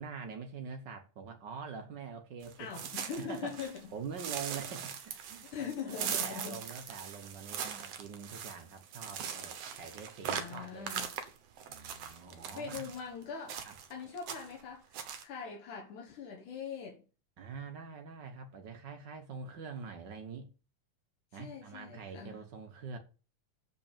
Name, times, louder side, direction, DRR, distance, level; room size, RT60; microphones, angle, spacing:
voice 1, 0.0-2.7 3.2-3.6 3.9-10.9 11.7-12.9 13.6-13.7 17.4-20.5 21.3-23.0, right 5 dB, 85° right, 0.9 m, -45 dB
sound 1, 2.4-3.8 4.2-13.0 13.5-13.9 14.2-14.6 14.9-15.2, right 8 dB, 60° right, 1.9 m, -40 dB
voice 2, 2.6-3.8 5.5-6.6 10.3-11.1 12.4-13.6 13.9-14.9 15.2-17.0 21.3-22.4, left 6 dB, 75° left, 2.9 m, -42 dB
7.8 x 5.5 x 7.2 m
omnidirectional pair, 3.7 m